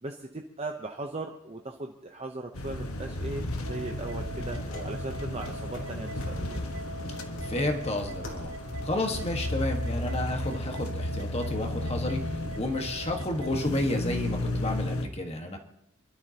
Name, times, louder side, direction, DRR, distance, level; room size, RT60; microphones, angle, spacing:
voice 1, 0.0-6.6, right 2 dB, 30° right, 2 dB, 0.8 m, -38 dB
sound 1, 2.5-15.1, left 1 dB, 90° left, 1.3 m, -34 dB
sound 2, 3.7-13.7, right 2 dB, 65° right, 1.4 m, -43 dB
sound 3, 4.6-10.1, left 1 dB, 65° left, 3.0 m, -46 dB
voice 2, 7.4-8.5 8.8-15.6, left 1 dB, 30° left, 3 dB, 1.5 m, -31 dB
27.0 x 12.0 x 2.9 m, 0.79 s
head